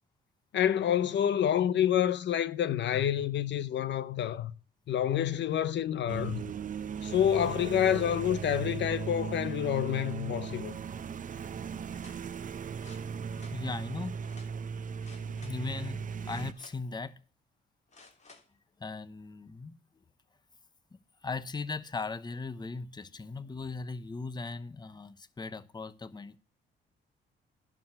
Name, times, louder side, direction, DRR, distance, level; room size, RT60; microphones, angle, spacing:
voice 1, 0.5-4.5 4.9-6.5 7.0-10.8 13.3-13.4, left 10 dB, 65° left, 0.8 m, -28 dB
sound 1, 6.1-16.5, right 6 dB, 40° right, 0.7 m, -37 dB
sound 2, 11.9-12.2 12.8-13.6 14.2-14.5 15.0-15.6 16.2-16.9 17.9-18.5 19.0-19.1, left 3 dB, 35° left, 3.5 m, -56 dB
voice 2, 13.5-14.2 15.4-17.2 18.8-19.7 21.2-26.4, left 4 dB, 20° left, 0.9 m, -38 dB
11.5 x 4.9 x 7.7 m
cardioid pair, 90°, 20 cm